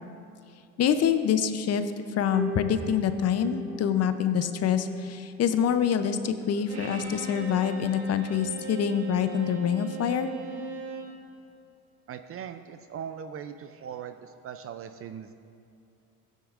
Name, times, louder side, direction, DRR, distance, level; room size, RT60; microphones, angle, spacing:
voice 1, 0.8-1.8 2.1-10.3, left 8 dB, 40° left, 10 dB, 0.6 m, -26 dB
sound 1, 2.3-9.2, right 1 dB, ahead, 0.8 m, -43 dB
Bowed string instrument, 6.7-11.2, right 4 dB, 60° right, 2.1 m, -39 dB
voice 2, 12.1-15.3, right 8 dB, 35° right, 9 dB, 0.4 m, -40 dB
15.5 x 9.4 x 2.5 m, 2.5 s
supercardioid pair, 105°, 41 cm